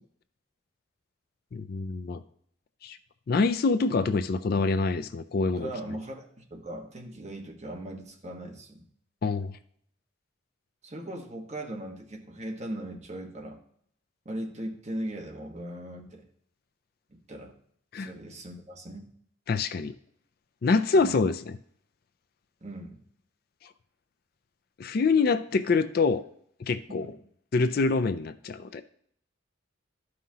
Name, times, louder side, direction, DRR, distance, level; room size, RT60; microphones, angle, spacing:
voice 1, 1.5-2.2 2.8-3.0 3.3-5.7 9.2-9.6 17.9-18.1 19.5-19.9 20.6-21.6 24.8-26.2 26.6-27.1 27.5-28.8, left 4 dB, 50° left, 11 dB, 0.3 m, -25 dB
voice 2, 5.5-8.8 10.8-13.6 14.2-16.2 17.1-17.5 17.9-19.1 20.9-21.1 22.6-23.0 26.9-27.1, right 1 dB, 35° right, 0 dB, 1.3 m, -39 dB
13.0 x 5.6 x 2.8 m, 0.65 s
head